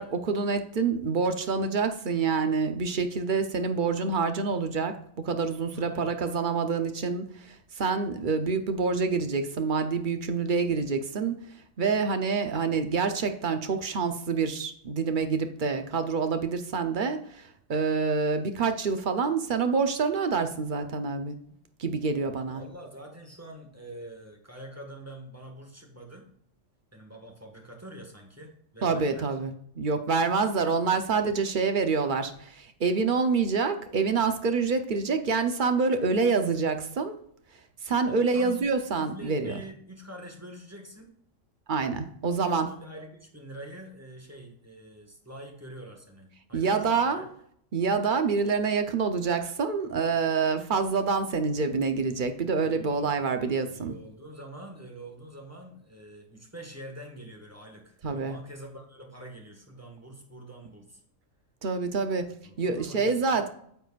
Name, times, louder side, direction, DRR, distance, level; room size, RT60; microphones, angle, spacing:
voice 1, 0.0-11.4 11.8-21.4 21.8-22.6 28.8-37.2 37.8-39.6 41.7-42.7 46.5-47.3 47.7-53.9 58.0-58.4 61.6-62.3 62.6-63.5, right 4 dB, 45° right, 8 dB, 0.8 m, -27 dB
voice 2, 5.7-6.1 22.5-26.3 26.9-29.4 38.1-38.6 39.0-41.1 42.5-46.7 46.9-47.2 52.6-61.0 62.4-63.4, right 1 dB, 10° right, 1 dB, 1.5 m, -45 dB
9.2 x 6.9 x 2.4 m, 0.66 s
omnidirectional pair, 1.4 m